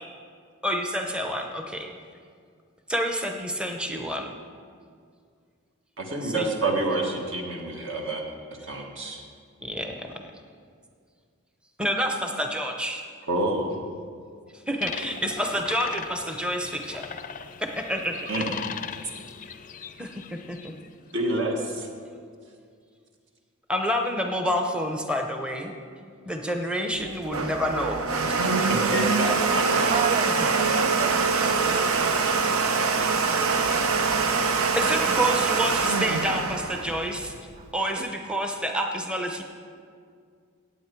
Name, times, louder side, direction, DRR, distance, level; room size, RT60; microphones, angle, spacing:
voice 1, 0.6-1.9 2.9-4.3 6.2-6.5 9.6-10.1 11.8-13.0 14.7-17.1 17.8-18.5 20.0-20.7 23.7-25.7 26.3-28.1 28.4-28.7 34.7-37.3 37.7-39.4, equal, 5° right, 3 dB, 0.7 m, -28 dB
voice 2, 6.0-8.2 8.6-9.2 13.3-13.8 18.3-18.6 21.1-21.9 28.7-30.0, right 2 dB, 60° right, 1 dB, 1.7 m, -28 dB
sound 1, 14.8-20.9, left 7 dB, 35° left, 0.4 m, -39 dB
Domestic sounds home sounds, 27.0-37.7, right 4 dB, 80° right, 0.8 m, -24 dB
voice 3, 29.8-32.6 36.3-36.4 37.6-38.1 38.4-38.7, right 6 dB, 30° right, 9 dB, 0.3 m, -35 dB
17.5 x 8.3 x 4.6 m, 2.2 s
head